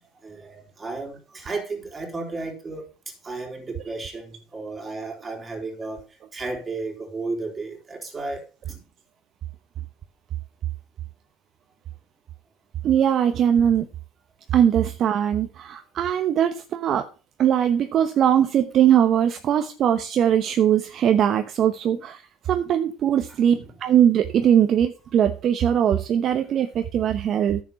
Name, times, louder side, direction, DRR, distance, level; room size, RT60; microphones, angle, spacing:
voice 1, 0.2-2.8 3.2-6.0 6.3-8.4 8.7-8.8 21.9-22.0 23.5-23.7, right 3 dB, 20° right, 4.2 m, -33 dB
voice 2, 12.8-13.9 14.5-17.0 17.4-22.2 22.5-27.6, right 9 dB, 45° right, 1.0 m, -20 dB
10.0 x 7.4 x 5.7 m
supercardioid pair, 100°, 0 cm